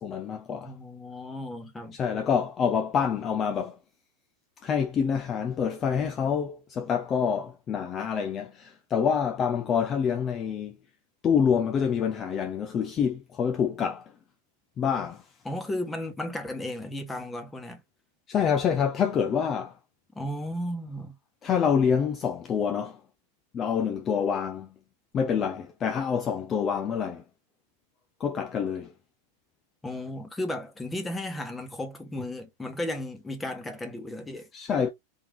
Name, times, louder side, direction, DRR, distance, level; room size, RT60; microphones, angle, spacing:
voice 1, 0.0-0.7 1.9-3.8 4.6-10.7 11.2-14.1 14.8-15.2 18.3-19.7 21.4-23.0 23.5-24.7 25.1-27.2 28.2-28.9 34.5-34.9, left 7 dB, 30° left, 0.5 m, -27 dB
voice 2, 0.6-2.0 15.4-17.8 20.1-21.2 29.8-34.5, left 1 dB, 10° left, 1.2 m, -34 dB
3.6 x 2.8 x 3.4 m
hypercardioid pair, 105°, 0 cm